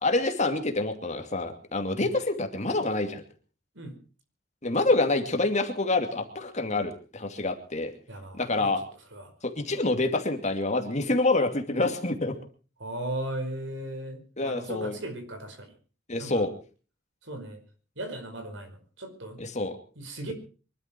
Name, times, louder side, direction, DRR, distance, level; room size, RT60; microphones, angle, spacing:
voice 1, 0.0-3.2 4.6-7.9 8.3-8.8 9.4-12.4 14.4-15.0 16.1-16.5 19.4-19.8, left 2 dB, 35° left, 6 dB, 2.5 m, -27 dB
voice 2, 8.1-8.7 9.1-9.3 12.8-15.7 16.2-16.4 17.2-17.6 18.0-19.4 19.9-20.3, right 1 dB, 65° right, 6 dB, 5.1 m, -37 dB
24.0 x 12.5 x 4.5 m, 0.38 s
head